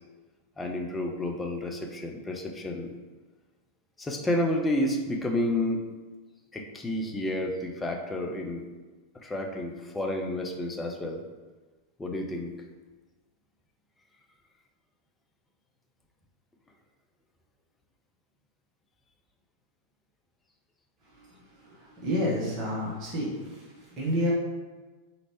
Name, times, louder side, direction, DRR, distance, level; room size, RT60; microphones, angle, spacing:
voice 1, 0.6-2.9 4.0-5.8 6.5-8.7 9.2-11.2 12.0-12.6, left 1 dB, 10° left, 2 dB, 0.5 m, -30 dB
voice 2, 21.6-23.6 24.0-24.3, equal, 30° right, -5 dB, 1.2 m, -29 dB
4.0 x 3.1 x 3.0 m, 1.3 s
figure-of-eight pair, 90°, 0 cm